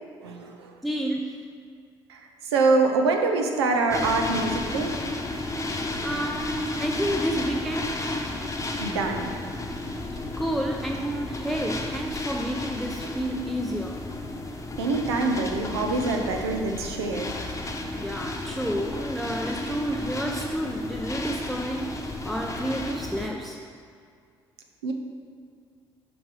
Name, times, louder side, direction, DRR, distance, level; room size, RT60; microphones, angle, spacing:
voice 1, 0.2-0.7 2.1-4.9 8.8-9.3 14.8-17.4 24.8-24.9, right 3 dB, 85° right, 3 dB, 0.6 m, -25 dB
voice 2, 0.8-1.5 6.0-8.0 10.4-14.1 17.9-23.6, equal, ahead, 1 dB, 0.5 m, -30 dB
sound 1, 3.9-23.3, left 2 dB, 20° left, 0.9 m, -33 dB
7.1 x 5.2 x 4.7 m, 2.1 s
hypercardioid pair, 50°, 13 cm